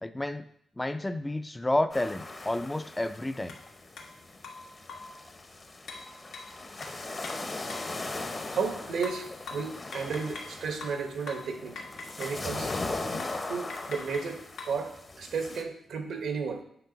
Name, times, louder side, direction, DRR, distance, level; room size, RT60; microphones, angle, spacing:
voice 1, 0.0-0.5 0.8-3.6, left 1 dB, 15° left, 11 dB, 0.5 m, -30 dB
sound 1, 1.9-15.6, left 2 dB, 30° left, 0.8 m, -39 dB
sound 2, 3.5-3.6 4.0-4.1 4.4-5.2 5.9-8.0 9.0-10.6 10.8-12.4 12.7-12.9 13.2-13.4 13.7-14.8, left 4 dB, 85° left, 1.2 m, -43 dB
voice 2, 8.5-11.8 12.2-12.7 13.5-16.6, right 5 dB, 75° right, 5 dB, 1.1 m, -33 dB
8.2 x 5.5 x 3.9 m, 0.68 s
cardioid pair, 100°, 0 cm